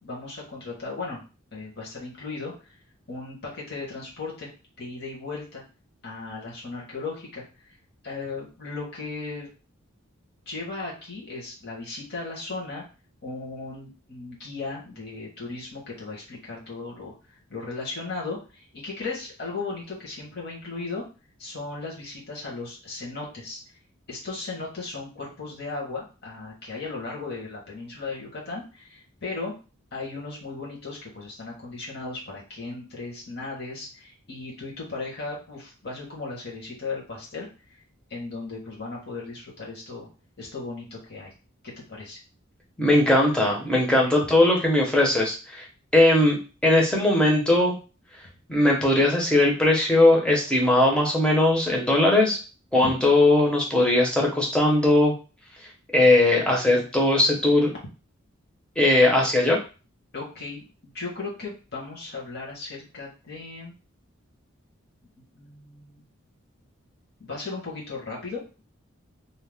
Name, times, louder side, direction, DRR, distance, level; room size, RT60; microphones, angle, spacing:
voice 1, 0.0-1.2 1.5-2.5 3.1-4.5 4.8-5.6 6.0-7.4 8.0-9.5 10.5-12.8 13.2-17.1 17.5-21.1 21.4-23.6 24.1-29.5 29.9-37.8 38.1-40.1 40.4-41.3 41.6-42.2 44.0-44.1 52.8-53.0 60.1-60.6 60.9-63.7 65.3-66.0 67.2-68.6, left 3 dB, 50° left, -4 dB, 1.1 m, -36 dB
voice 2, 42.8-45.6 45.9-46.4 46.6-47.8 48.5-52.4 52.7-55.1 55.9-57.7 58.8-59.6, left 1 dB, 5° left, -2 dB, 0.6 m, -19 dB
2.7 x 2.0 x 3.4 m, 0.33 s
head